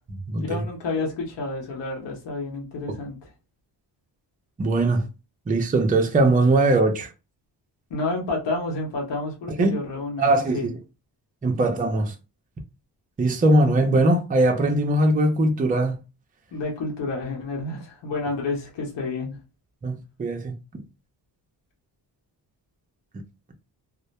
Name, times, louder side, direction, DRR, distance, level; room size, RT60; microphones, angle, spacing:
voice 1, 0.3-3.3 7.9-10.7 16.5-19.4, left 3 dB, 85° left, 0.9 m, -30 dB
voice 2, 4.6-5.0 5.5-7.1 9.6-9.7 10.2-10.7 11.4-12.1 13.2-16.0 19.8-20.6, right 2 dB, 20° right, 0.4 m, -20 dB
2.1 x 2.1 x 2.8 m
cardioid pair, 100°, 42 cm